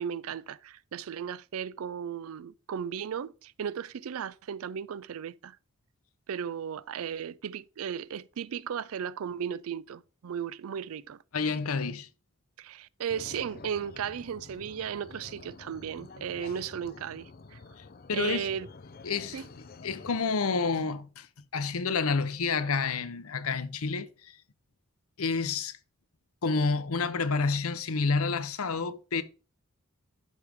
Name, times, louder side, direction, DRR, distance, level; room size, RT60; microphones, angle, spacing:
voice 1, 0.0-5.6 6.3-11.2 12.6-17.6 18.1-18.7 19.3-19.5, right 8 dB, 80° right, 0.4 m, -36 dB
voice 2, 11.3-12.1 18.1-18.5 19.0-19.4 19.8-21.3 21.5-24.4 25.2-25.8 26.4-29.2, left 4 dB, 90° left, 0.8 m, -29 dB
sound 1, 13.1-20.2, left 3 dB, 45° left, 0.5 m, -48 dB
12.0 x 4.7 x 3.5 m
head